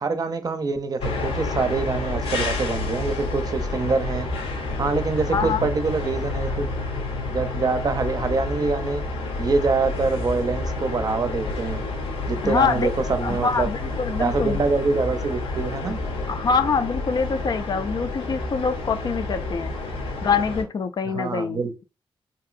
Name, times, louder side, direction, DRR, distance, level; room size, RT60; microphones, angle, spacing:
voice 1, 0.0-4.3 4.8-6.7 7.3-9.0 9.4-11.8 12.3-13.7 14.2-16.0 21.0-21.7, right 4 dB, 45° right, 0.6 m, -25 dB
sound 1, 1.0-20.6, left 2 dB, 85° left, 0.7 m, -29 dB
voice 2, 5.3-5.7 12.4-12.9 13.2-14.6 16.3-19.7 20.2-21.8, left 5 dB, 50° left, 0.3 m, -25 dB
2.9 x 2.7 x 2.5 m
cardioid pair, 75°, 9 cm